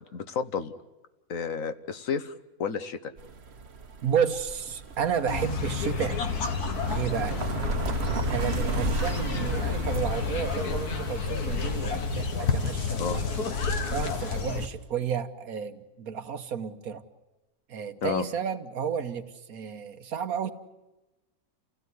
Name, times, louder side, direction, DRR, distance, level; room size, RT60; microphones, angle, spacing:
voice 1, 0.1-0.7 1.3-2.3 2.6-3.1 7.3-7.4 13.0-13.2 18.0-18.2, left 6 dB, 65° left, 11 dB, 1.4 m, -31 dB
sound 1, 3.2-14.4, right 4 dB, 45° right, 1.2 m, -35 dB
voice 2, 4.0-6.2 6.8-7.4 8.2-13.2 13.9-17.0 17.7-20.5, right 7 dB, 70° right, 9 dB, 1.6 m, -31 dB
sound 2, 5.3-14.7, left 5 dB, 85° left, 2.1 m, -30 dB
29.0 x 16.5 x 9.5 m, 1.1 s
omnidirectional pair, 1.6 m